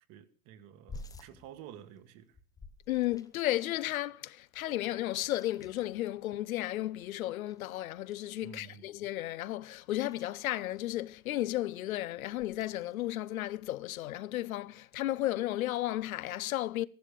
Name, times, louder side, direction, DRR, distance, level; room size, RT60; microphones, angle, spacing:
voice 1, 0.0-2.4 8.4-8.9, right 9 dB, 40° right, 1.5 m, -51 dB
sound 1, 0.9-3.6 3.9-4.0 4.2-6.6 6.9-8.9 9.5-11.6 12.3-13.2 13.5-14.0 14.3-15.2, left 2 dB, 10° left, 0.8 m, -53 dB
voice 2, 2.9-16.8, left 15 dB, 80° left, 0.9 m, -34 dB
14.0 x 12.0 x 6.8 m
supercardioid pair, 140°, 42 cm